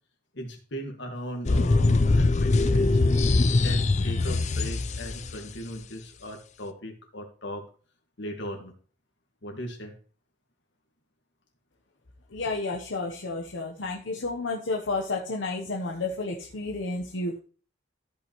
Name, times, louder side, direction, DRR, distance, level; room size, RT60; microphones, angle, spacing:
voice 1, 0.3-3.0 3.5-7.7 8.2-8.7 9.4-9.9, equal, 65° left, 2 dB, 2.0 m, -38 dB
sound 1, 1.5-5.4, left 2 dB, 40° left, 0.5 m, -22 dB
voice 2, 12.3-17.4, left 3 dB, 85° left, 0 dB, 1.0 m, -31 dB
14.0 x 5.6 x 3.1 m, 0.40 s
head